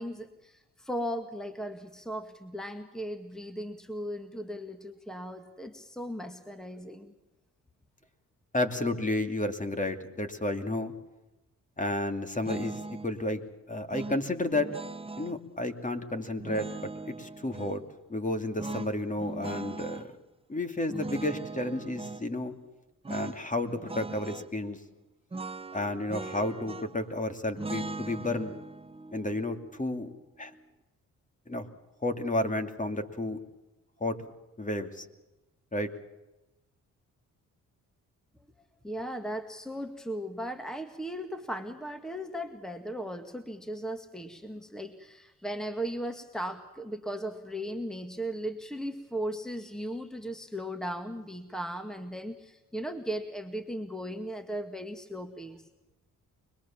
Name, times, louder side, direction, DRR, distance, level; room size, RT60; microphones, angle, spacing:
voice 1, 0.0-7.1 38.8-55.7, equal, ahead, 7 dB, 1.9 m, -37 dB
voice 2, 8.5-10.9 11.8-13.4 13.7-14.7 15.2-17.8 18.1-20.1 20.5-22.5 23.1-24.8 25.7-28.6 29.1-30.1 30.4-30.5 31.5-31.7 32.0-33.4 34.0-34.2 34.6-35.1 35.7-35.9, left 2 dB, 25° left, 7 dB, 2.7 m, -31 dB
sound 1, 12.4-13.1 13.9-15.4 16.4-17.8 18.6-20.1 20.9-22.2 23.0-23.4 23.7-24.5 25.3-27.1 27.6-30.6, right 3 dB, 15° right, 0.9 m, -40 dB
25.0 x 21.5 x 7.3 m, 1.0 s
cardioid pair, 75°, 33 cm